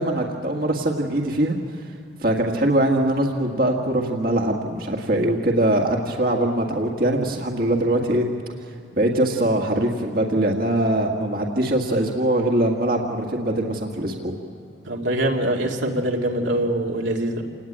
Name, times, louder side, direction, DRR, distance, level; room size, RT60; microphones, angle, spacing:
voice 1, 0.0-1.9 2.2-8.3 9.0-14.3, right 1 dB, 50° right, 1 dB, 1.8 m, -22 dB
voice 2, 14.9-17.4, right 1 dB, 80° right, 0 dB, 2.2 m, -23 dB
28.5 x 19.5 x 8.8 m, 2.5 s
head